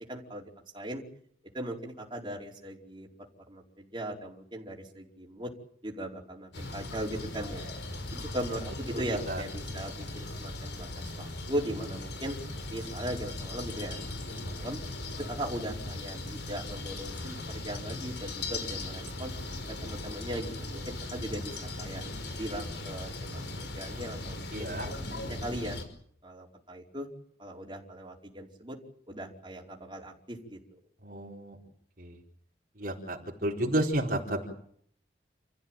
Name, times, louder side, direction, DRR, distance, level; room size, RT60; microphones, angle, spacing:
voice 1, 0.1-0.4 0.7-1.0 1.5-3.1 3.5-5.5 5.8-7.7 8.1-12.4 12.7-14.0 14.3-14.8 15.2-19.3 19.8-22.0 22.4-24.9 25.2-25.8 26.2-27.1 27.4-28.8 29.1-30.6, right 1 dB, 25° right, -1 dB, 4.8 m, -38 dB
sound 1, 6.5-25.8, left 2 dB, 75° left, 5.4 m, -38 dB
voice 2, 24.5-24.9 31.0-31.6 32.0-32.2 32.8-34.5, right 1 dB, 50° right, -1 dB, 4.5 m, -31 dB
30.0 x 15.5 x 9.1 m, 0.64 s
head